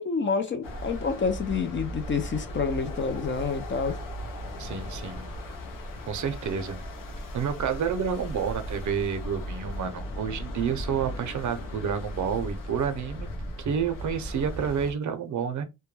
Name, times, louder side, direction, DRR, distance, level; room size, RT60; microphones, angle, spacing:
voice 1, 0.0-4.0, left 5 dB, 35° left, 0.4 m, -28 dB
sound 1, 0.6-14.9, equal, 75° left, 0.7 m, -37 dB
voice 2, 4.6-5.3 6.1-6.8 7.3-13.3 13.6-15.7, right 7 dB, 60° right, 0.6 m, -29 dB
2.1 x 2.1 x 3.1 m
cardioid pair, 100°, 33 cm